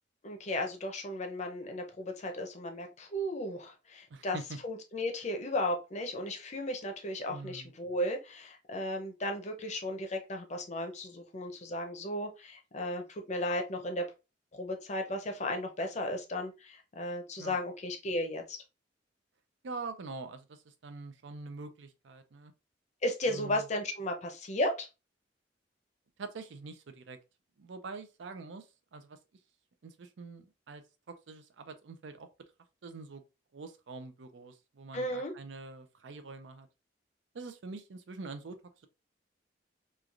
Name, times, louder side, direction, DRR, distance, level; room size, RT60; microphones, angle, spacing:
voice 1, 0.2-4.4 4.6-14.1 14.5-18.6 23.0-24.9 34.9-35.3, left 1 dB, 40° left, 0.6 m, -35 dB
voice 2, 4.1-4.6 7.3-7.7 17.4-17.6 19.6-22.5 23.3-23.7 26.2-27.2 27.6-28.7 28.9-29.2 29.8-30.8 31.1-32.3 32.8-33.2 33.5-36.7 37.3-38.9, right 3 dB, 85° right, 0.5 m, -45 dB
3.1 x 2.4 x 2.4 m
head